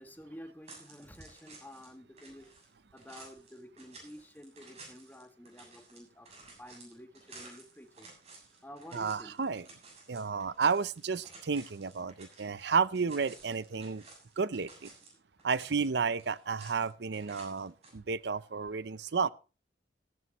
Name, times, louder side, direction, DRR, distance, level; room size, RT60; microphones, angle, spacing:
voice 1, 0.0-2.5 2.9-6.3 6.6-8.1 8.6-9.3, equal, 10° left, 1.7 m, -50 dB
sound 1, 0.7-1.9 2.2-12.7 12.9-15.1 15.4-16.9 17.1-17.9, right 3 dB, 40° right, 7.3 m, -54 dB
voice 2, 8.9-9.7 10.1-14.0 14.4-14.9 15.4-19.3, right 5 dB, 65° right, 0.6 m, -32 dB
15.5 x 14.5 x 3.0 m
head